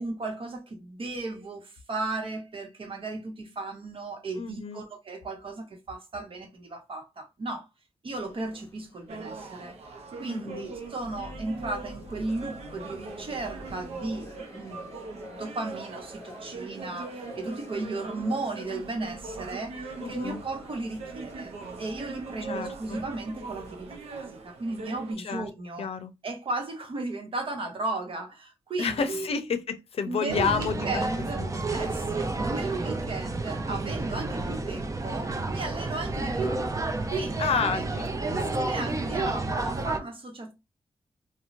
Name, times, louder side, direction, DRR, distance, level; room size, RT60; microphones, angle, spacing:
voice 1, 0.0-7.7 8.0-9.8 10.2-25.9 26.2-29.3 30.0-36.6 37.1-37.8 38.6-40.5, right 2 dB, 60° right, 0.9 m, -35 dB
voice 2, 4.4-4.8 10.3-10.7 20.0-20.4 22.5-23.0 25.2-25.5 25.8-26.1 28.8-31.0 31.4-31.5 37.4-38.5, left 5 dB, 70° left, 0.5 m, -30 dB
sound 1, 8.1-24.8, left 1 dB, 30° left, 0.8 m, -49 dB
sound 2, 9.1-25.1, right 4 dB, 85° right, 0.5 m, -41 dB
sound 3, 30.3-40.0, right 2 dB, 30° right, 0.5 m, -30 dB
2.8 x 2.1 x 2.5 m
cardioid pair, 45°, 10 cm